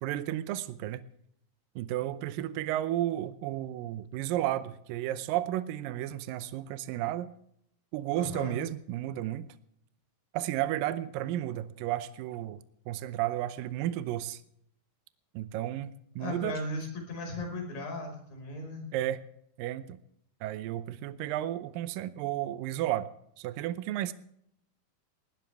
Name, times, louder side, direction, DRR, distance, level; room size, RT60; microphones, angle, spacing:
voice 1, 0.0-1.0 1.8-7.3 7.9-9.5 10.3-12.6 12.9-14.4 15.3-16.6 18.9-19.2 19.6-20.0 20.4-23.1 23.4-24.1, right 13 dB, 80° right, 13 dB, 2.4 m, -33 dB
voice 2, 8.2-8.6 16.2-18.8, left 1 dB, 80° left, 2 dB, 6.9 m, -37 dB
20.0 x 18.0 x 3.4 m, 0.71 s
omnidirectional pair, 4.1 m